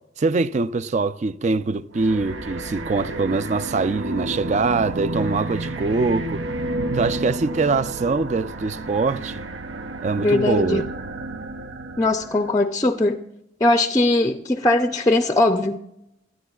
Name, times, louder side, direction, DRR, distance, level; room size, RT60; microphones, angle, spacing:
voice 1, 0.2-6.4 6.9-9.4 10.0-10.8, right 3 dB, 40° right, 0.4 m, -23 dB
sound 1, 1.9-12.5, right 2 dB, 80° right, 0.7 m, -31 dB
voice 2, 10.2-10.9 12.0-13.2 13.6-15.8, left 2 dB, 20° left, 0.5 m, -20 dB
26.5 x 10.0 x 2.4 m
head